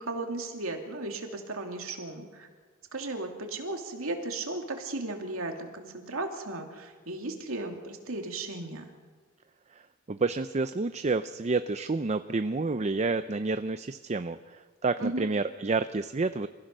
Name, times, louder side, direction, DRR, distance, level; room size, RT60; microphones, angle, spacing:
voice 1, 0.0-2.5 2.9-8.9 15.0-15.3, right 2 dB, 75° right, 3 dB, 2.8 m, -35 dB
voice 2, 10.1-16.5, right 3 dB, 30° right, 11 dB, 0.5 m, -29 dB
28.0 x 15.5 x 6.6 m, 1.5 s
head